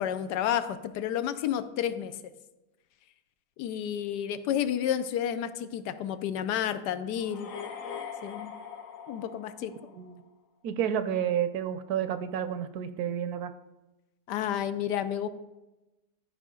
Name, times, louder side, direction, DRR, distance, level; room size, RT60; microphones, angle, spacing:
voice 1, 0.0-2.2 3.6-7.5 8.2-8.5 9.1-9.7 14.3-15.3, left 10 dB, 80° left, 12 dB, 1.2 m, -30 dB
sound 1, 7.2-10.2, left 7 dB, 60° left, 1.1 m, -42 dB
voice 2, 10.6-13.5, right 9 dB, 75° right, 11 dB, 1.0 m, -30 dB
12.0 x 5.1 x 3.7 m, 1.0 s
omnidirectional pair, 1.8 m